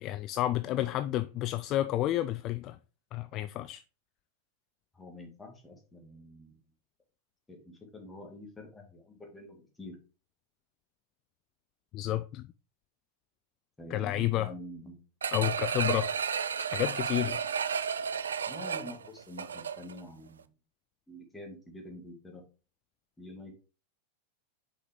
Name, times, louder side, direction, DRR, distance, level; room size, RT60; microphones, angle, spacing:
voice 1, 0.0-2.8 3.1-3.8 11.9-12.5 13.9-14.5 15.3-16.1 16.7-17.4, left 14 dB, 35° left, 0.3 m, -30 dB
voice 2, 0.6-1.1 4.9-6.6 7.5-10.0 13.8-15.0 18.5-20.5 21.1-22.4 23.2-23.5, left 1 dB, 10° left, 2.0 m, -47 dB
sound 1, 15.2-20.0 20.4-20.5, right 7 dB, 70° right, 0.4 m, -32 dB
6.3 x 4.7 x 3.6 m
figure-of-eight pair, 90°, 0 cm